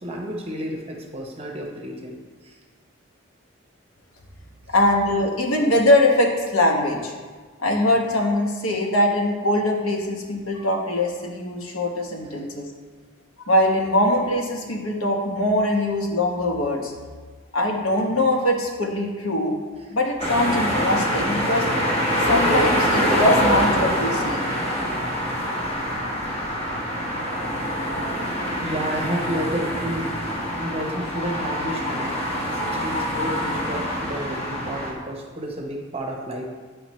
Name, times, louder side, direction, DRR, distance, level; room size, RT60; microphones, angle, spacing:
voice 1, 0.0-2.6 12.3-12.4 28.6-30.1 30.5-36.4, equal, 30° right, 1 dB, 0.9 m, -31 dB
voice 2, 4.7-7.1 7.6-12.7 13.4-16.9 17.5-19.6 19.9-21.7 22.2-24.4, left 1 dB, 75° left, 1 dB, 1.1 m, -22 dB
sound 1, 20.2-34.9, equal, 30° left, 1.3 m, -25 dB
9.2 x 4.9 x 3.1 m, 1.5 s
head